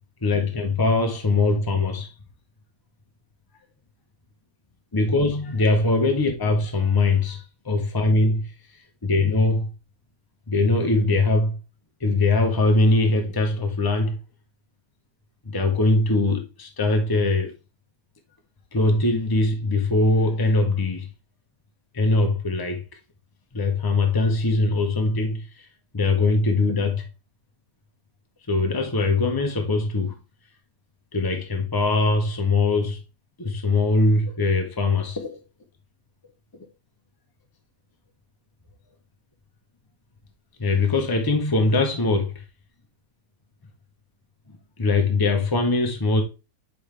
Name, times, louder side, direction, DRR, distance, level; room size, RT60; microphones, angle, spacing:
voice 1, 0.2-2.1 4.9-8.5 9.0-9.7 10.5-11.6 12.0-14.2 15.4-17.5 18.7-21.1 21.9-22.8 23.5-25.7 25.9-27.1 28.5-30.1 31.1-33.0 33.4-35.4 40.6-42.4 44.8-46.2, left 2 dB, 30° left, 0.4 m, -22 dB
6.9 x 5.2 x 3.3 m
omnidirectional pair, 1.8 m